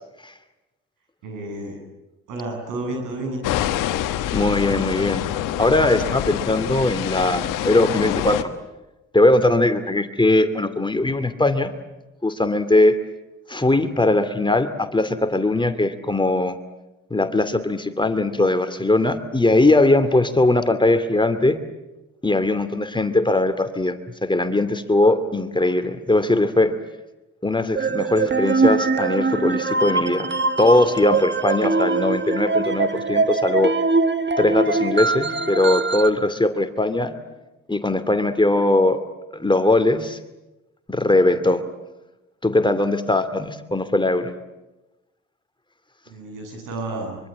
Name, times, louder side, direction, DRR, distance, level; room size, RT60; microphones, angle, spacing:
voice 1, 1.2-1.8 2.3-3.6 46.1-47.2, right 2 dB, 80° right, 3 dB, 7.9 m, -31 dB
sound 1, 3.4-8.4, left 12 dB, 80° left, 1.5 m, -26 dB
voice 2, 4.3-5.2 5.6-8.5 9.1-11.7 12.2-13.0 13.5-16.6 17.1-21.6 22.2-26.7 27.4-30.3 30.6-33.7 34.4-37.1 37.7-39.0 39.3-40.2 40.9-41.6 42.4-44.3, left 2 dB, 15° left, 10 dB, 2.6 m, -20 dB
sound 2, 27.8-36.1, right 3 dB, 35° right, 1.7 m, -22 dB
25.0 x 24.5 x 8.7 m, 1.0 s
supercardioid pair, 55°, 32 cm